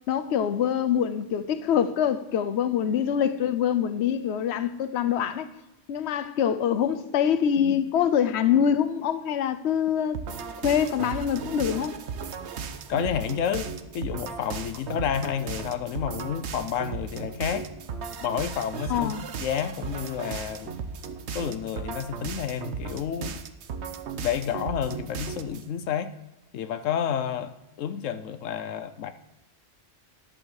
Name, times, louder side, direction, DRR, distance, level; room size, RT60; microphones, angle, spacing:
voice 1, 0.1-5.5 5.9-10.2 10.6-12.0 18.9-19.2, left 8 dB, 65° left, 1.0 m, -25 dB
sound 1, 10.1-25.7, right 6 dB, 65° right, 1.0 m, -36 dB
voice 2, 12.9-17.7 18.2-19.1 19.4-20.7 21.3-23.4 24.1-26.1 26.5-29.1, left 8 dB, 85° left, 1.1 m, -30 dB
11.5 x 7.5 x 6.5 m
omnidirectional pair, 1.3 m